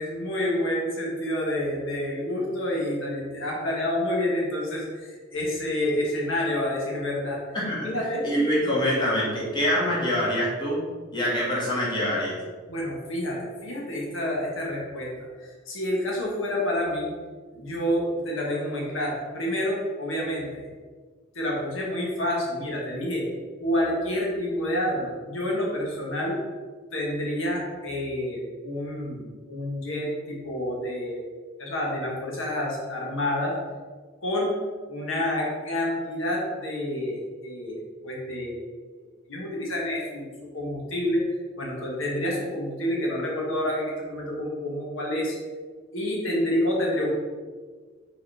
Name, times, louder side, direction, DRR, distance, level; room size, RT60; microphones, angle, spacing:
voice 1, 0.0-7.4 7.8-8.3 8.6-8.8 12.7-15.1 15.4-17.1 17.5-20.7 21.3-23.3 23.6-26.4 26.9-31.2 31.6-33.6 34.2-34.6 34.9-38.7 39.0-41.2 41.6-45.4 45.9-47.1, left 1 dB, 85° left, -3 dB, 1.5 m, -28 dB
voice 2, 7.5-7.9 8.2-10.8 11.1-12.4, equal, 20° left, -6 dB, 1.7 m, -25 dB
5.1 x 4.2 x 4.8 m, 1.5 s
head